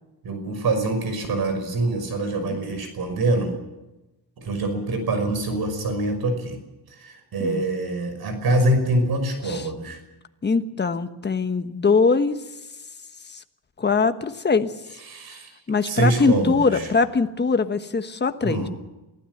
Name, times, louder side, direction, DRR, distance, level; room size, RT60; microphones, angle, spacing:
voice 1, 0.2-3.6 4.4-6.6 6.9-10.0 15.1-15.5 15.8-16.9 18.4-18.7, right 2 dB, 60° right, 8 dB, 5.6 m, -25 dB
voice 2, 10.4-12.4 13.8-14.7 15.7-18.7, left 4 dB, 25° left, 9 dB, 1.3 m, -22 dB
23.5 x 15.5 x 7.9 m, 1.0 s
cardioid pair, 130°, 41 cm